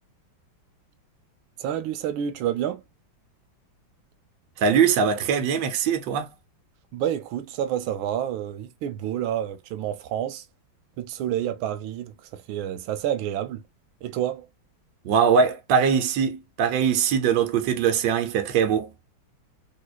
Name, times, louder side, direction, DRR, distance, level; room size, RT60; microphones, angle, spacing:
voice 1, 1.6-2.8 6.9-10.5 11.0-13.6 14.0-14.5, right 10 dB, 90° right, 1.4 m, -29 dB
voice 2, 4.6-6.3 15.0-18.9, right 7 dB, 70° right, 1.4 m, -22 dB
3.9 x 2.8 x 2.2 m
omnidirectional pair, 2.1 m